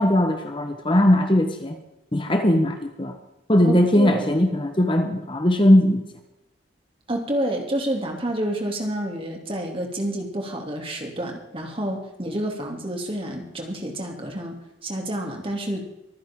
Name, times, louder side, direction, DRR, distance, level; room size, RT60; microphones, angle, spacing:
voice 1, 0.0-1.8 2.1-3.2 3.5-6.0, left 1 dB, 25° left, 5 dB, 1.2 m, -19 dB
voice 2, 3.6-4.4 7.1-15.8, right 1 dB, 25° right, 2 dB, 2.9 m, -29 dB
24.5 x 10.0 x 3.8 m, 0.90 s
head